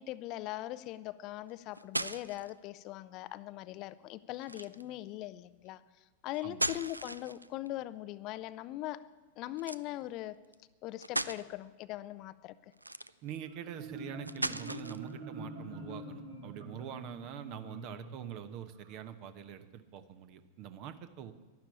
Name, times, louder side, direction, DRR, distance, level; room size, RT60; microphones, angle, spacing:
voice 1, 0.0-5.8 6.2-9.0 9.4-10.4 10.8-12.7, left 15 dB, 40° left, 15 dB, 0.5 m, -41 dB
sound 1, 1.5-2.5 4.4-4.9 6.3-7.7 9.6-9.8 10.5-10.6 11.0-11.4 12.7-13.4 14.3-15.1, right 1 dB, 85° right, 0.4 m, -37 dB
voice 2, 13.2-21.3, right 9 dB, 40° right, 11 dB, 1.0 m, -45 dB
Marimba xylophone, 13.4-19.0, right 2 dB, 70° right, 3.1 m, -45 dB
12.0 x 11.5 x 8.8 m, 1.3 s
figure-of-eight pair, 90°, 0 cm